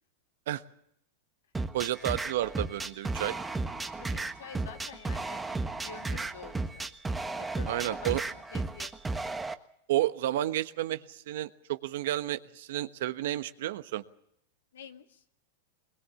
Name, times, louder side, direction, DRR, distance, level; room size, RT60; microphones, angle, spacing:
sound 1, 1.5-9.5, right 3 dB, 10° right, 1.4 m, -34 dB
voice 1, 1.7-3.3 7.7-8.2 9.9-14.0, right 14 dB, 70° right, 11 dB, 1.2 m, -31 dB
voice 2, 3.8-7.0 7.4-9.2 14.7-15.2, left 7 dB, 80° left, 5 dB, 2.1 m, -48 dB
21.5 x 21.0 x 7.1 m, 0.74 s
hypercardioid pair, 110°, 0 cm